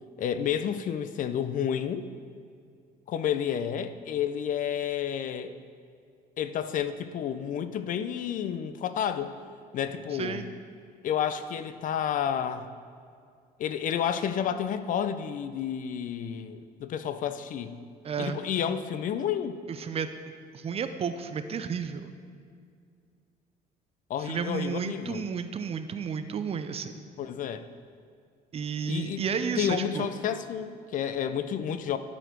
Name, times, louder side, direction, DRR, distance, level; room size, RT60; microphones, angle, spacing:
voice 1, 0.2-2.1 3.1-5.5 6.4-9.3 9.7-10.4 11.0-12.7 13.6-17.7 18.2-19.6 24.1-25.2 27.2-27.6 28.9-29.2 29.6-32.0, left 8 dB, 50° left, 11 dB, 0.4 m, -30 dB
voice 2, 10.1-10.5 18.0-18.4 19.7-20.1 20.5-22.1 24.2-26.9 28.5-30.1, right 6 dB, 35° right, 10 dB, 0.4 m, -32 dB
11.0 x 4.2 x 4.5 m, 2.3 s
cardioid pair, 110°, 17 cm